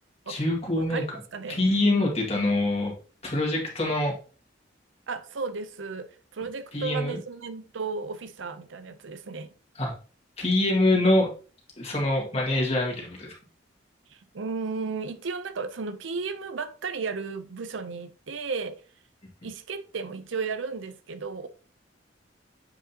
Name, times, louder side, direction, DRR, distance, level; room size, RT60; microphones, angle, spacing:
voice 1, 0.3-1.0 1.5-2.9 3.2-4.2 6.7-7.2 9.8-9.9 10.4-11.3 11.8-13.3, left 2 dB, 35° left, 2.0 m, -24 dB
voice 2, 0.8-1.1 1.3-1.6 5.1-9.5 14.1-18.8 19.4-21.5, right 4 dB, 80° right, 0.6 m, -34 dB
7.7 x 4.9 x 2.9 m
head